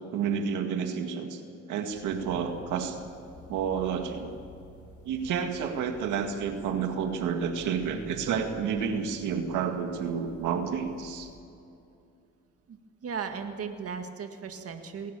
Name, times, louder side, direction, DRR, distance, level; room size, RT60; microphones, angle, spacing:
voice 1, 0.1-1.4 1.7-3.0 3.5-4.4 5.0-11.3, right 7 dB, 90° right, 5 dB, 2.0 m, -30 dB
sound 1, 1.9-11.4, left 1 dB, 70° left, 4.3 m, -50 dB
voice 2, 12.7-15.1, right 6 dB, 50° right, 5 dB, 1.9 m, -37 dB
20.5 x 18.0 x 7.1 m, 2.6 s
cardioid pair, 90°, 30 cm